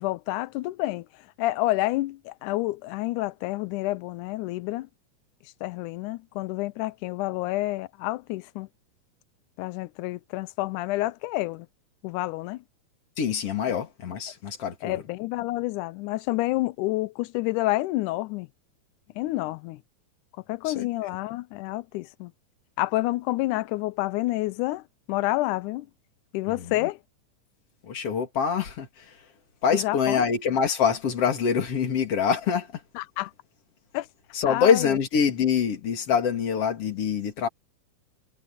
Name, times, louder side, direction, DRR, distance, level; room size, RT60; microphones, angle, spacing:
voice 1, 0.0-4.9 5.4-8.7 9.6-11.7 12.0-12.6 14.8-18.5 19.2-19.8 20.5-22.3 22.8-25.9 26.3-27.0 29.7-30.3 33.0-33.3 33.9-34.1 34.5-34.9, left 18 dB, 85° left, 1.8 m, -29 dB
voice 2, 13.2-15.0 20.6-20.9 26.5-26.9 27.8-29.3 29.6-32.8 34.3-37.5, left 7 dB, 45° left, 3.1 m, -25 dB
omnidirectional pair, 4.1 m